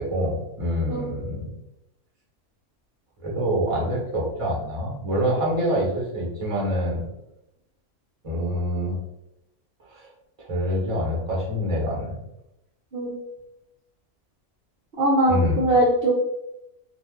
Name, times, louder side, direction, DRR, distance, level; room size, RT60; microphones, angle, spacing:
voice 1, 0.0-1.5 3.2-7.0 8.2-9.0 9.9-10.1 10.4-12.2 15.3-15.7, equal, 25° right, -4 dB, 0.9 m, -26 dB
voice 2, 15.0-16.1, right 1 dB, 55° right, -5 dB, 0.8 m, -21 dB
2.5 x 2.4 x 3.5 m, 0.85 s
omnidirectional pair, 1.4 m